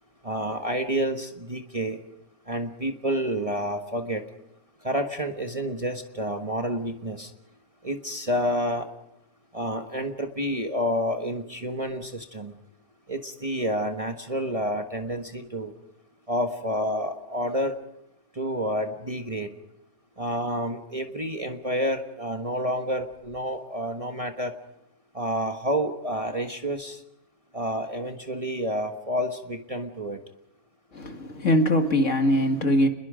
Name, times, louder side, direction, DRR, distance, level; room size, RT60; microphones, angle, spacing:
voice 1, 0.2-2.0 2.5-4.2 4.8-7.3 7.8-8.9 9.5-12.5 13.1-15.7 16.3-17.7 18.4-19.5 20.2-24.5 25.1-27.0 27.5-30.2, equal, 25° right, 4 dB, 1.3 m, -29 dB
voice 2, 30.9-32.9, left 1 dB, 55° left, 5 dB, 2.3 m, -22 dB
29.5 x 21.5 x 5.1 m, 0.85 s
omnidirectional pair, 1.6 m